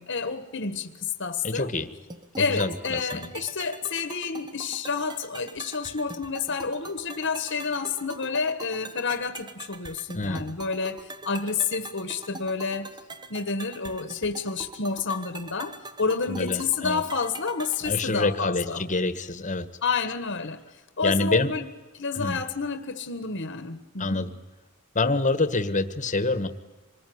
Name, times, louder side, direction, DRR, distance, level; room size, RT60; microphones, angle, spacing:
voice 1, 0.0-1.7 2.4-11.0 11.2-12.9 13.3-18.8 19.8-20.6 21.0-21.7 22.0-24.2, left 5 dB, 60° left, 1.6 m, -29 dB
voice 2, 1.4-1.9 2.4-3.3 10.1-10.5 16.3-17.0 17.8-19.7 21.0-21.5 22.1-22.4 24.0-24.3 24.9-26.5, left 3 dB, 35° left, 1.6 m, -26 dB
sound 1, 2.1-18.1, right 2 dB, 20° right, 1.2 m, -43 dB
26.5 x 20.5 x 9.6 m
head